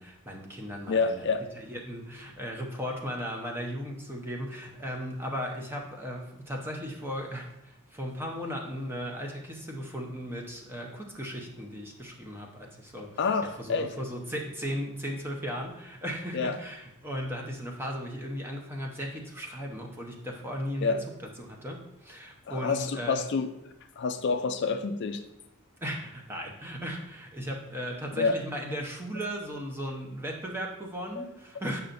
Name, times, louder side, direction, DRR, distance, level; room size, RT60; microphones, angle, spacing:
voice 1, 0.0-13.2 13.6-21.0 21.4-23.2 25.8-31.8, equal, 10° right, 0 dB, 0.8 m, -36 dB
voice 2, 0.9-1.4 13.2-13.9 16.3-16.6 20.8-21.0 22.5-23.5 24.0-25.2 28.2-28.4 31.2-31.3, left 4 dB, 50° left, 7 dB, 0.4 m, -28 dB
8.5 x 5.5 x 2.6 m, 0.84 s
head